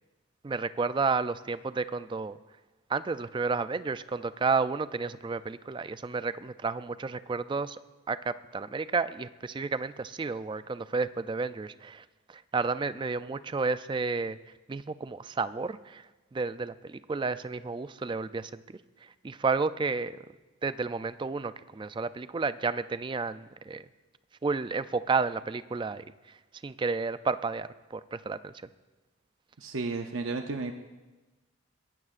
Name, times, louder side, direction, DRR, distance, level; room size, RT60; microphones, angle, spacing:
voice 1, 0.4-2.4 2.9-7.8 8.1-14.4 14.7-16.0 16.3-18.6 19.0-20.2 20.6-23.9 24.4-26.4 26.6-28.5, right 4 dB, 20° right, 13 dB, 0.3 m, -31 dB
voice 2, 29.6-30.7, right 3 dB, 65° right, 5 dB, 0.6 m, -33 dB
21.0 x 16.0 x 2.5 m, 1.2 s
head